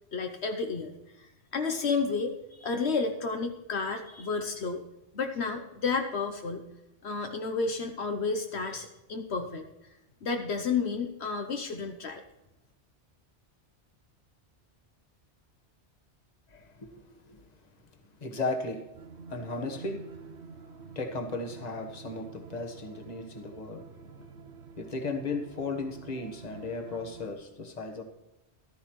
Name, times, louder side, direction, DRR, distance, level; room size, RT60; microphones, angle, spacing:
voice 1, 0.1-0.9 1.2-4.8 5.1-6.7 7.0-9.7 10.2-12.2, left 4 dB, 70° left, 4 dB, 1.2 m, -31 dB
voice 2, 16.5-17.4 18.2-18.9 19.3-20.0 20.6-24.5 24.8-28.0, left 3 dB, 35° left, 5 dB, 1.4 m, -36 dB
sound 1, 18.9-27.3, right 5 dB, 75° right, 1.1 m, -48 dB
14.0 x 13.0 x 3.2 m, 0.97 s
omnidirectional pair, 1.2 m